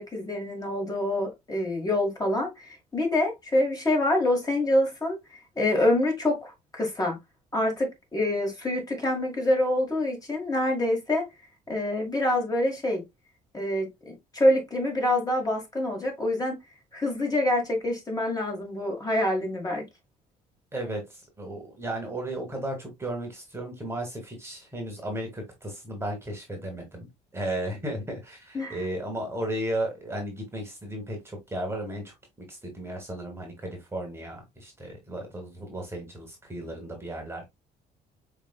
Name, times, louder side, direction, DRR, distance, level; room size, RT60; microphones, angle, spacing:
voice 1, 0.0-5.2 5.6-7.2 7.5-11.2 11.7-13.0 13.5-16.6 16.9-19.8 28.5-28.8, left 1 dB, 20° left, 1.8 m, -26 dB
voice 2, 20.7-37.4, right 1 dB, 15° right, 1.4 m, -35 dB
4.9 x 3.2 x 2.3 m
cardioid pair, 110°, 17 cm